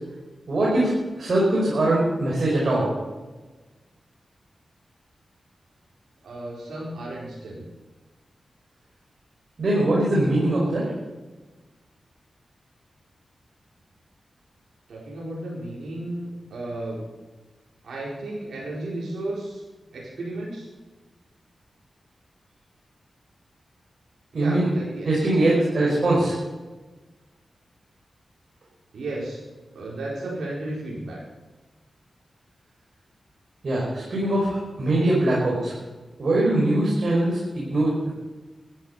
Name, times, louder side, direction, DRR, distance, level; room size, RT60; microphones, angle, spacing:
voice 1, 0.5-2.9 9.6-10.9 24.3-24.7 25.0-26.3 33.6-35.7 36.2-38.1, right 1 dB, 65° right, -4 dB, 5.5 m, -22 dB
voice 2, 6.2-7.6 14.9-17.0 17.8-19.6 19.9-20.7 24.3-25.7 26.1-26.2 28.9-29.4 29.7-31.2, right 1 dB, 85° right, -5 dB, 4.7 m, -33 dB
15.0 x 11.5 x 5.8 m, 1.2 s
cardioid pair, 50°, 0 cm